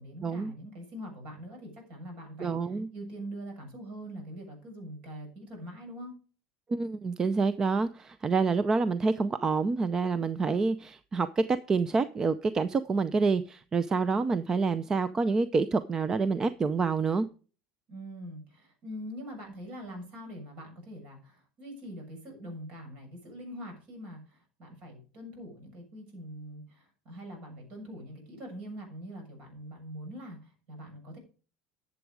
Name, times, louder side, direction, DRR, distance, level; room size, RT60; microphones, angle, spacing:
voice 1, 0.0-6.2 17.9-31.2, equal, 55° right, 3 dB, 7.1 m, -43 dB
voice 2, 2.4-2.9 6.7-17.3, right 4 dB, 25° right, 14 dB, 0.5 m, -27 dB
11.5 x 7.3 x 4.8 m, 0.37 s
supercardioid pair, 135°, 2 cm